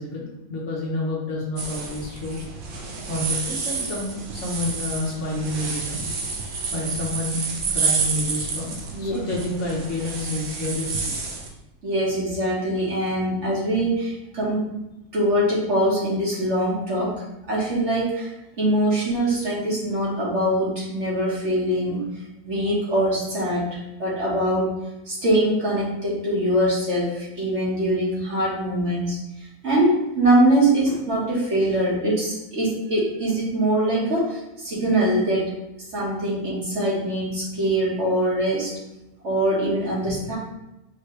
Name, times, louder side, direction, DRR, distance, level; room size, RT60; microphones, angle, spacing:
voice 1, 0.0-2.4 3.1-6.0 6.7-7.4 7.7-11.1 30.9-31.0, left 2 dB, 60° left, -3 dB, 1.3 m, -29 dB
sound 1, 1.6-11.5, right 4 dB, 75° right, 1.2 m, -29 dB
voice 2, 11.8-14.7 15.1-23.7 24.0-24.8 25.1-35.6 35.9-38.7 39.2-40.4, right 1 dB, 55° right, -6 dB, 1.7 m, -23 dB
4.8 x 3.1 x 3.2 m, 0.93 s
omnidirectional pair, 1.5 m